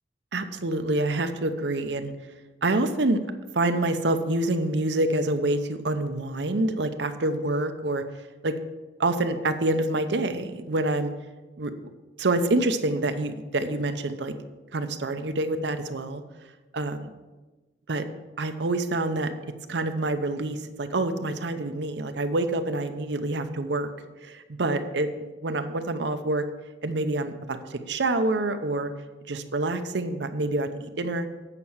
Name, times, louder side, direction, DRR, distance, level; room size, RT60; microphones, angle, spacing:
voice 1, 0.3-2.1 2.6-3.2 3.5-8.0 8.4-8.5 9.0-11.1 11.6-11.7 12.2-14.3 14.7-16.2 16.7-17.1 17.9-18.0 18.4-19.3 19.7-23.9 24.2-25.1 25.4-26.4 26.8-28.9 29.3-31.3, right 2 dB, 75° right, 9 dB, 0.8 m, -27 dB
8.3 x 5.8 x 7.1 m, 1.2 s
head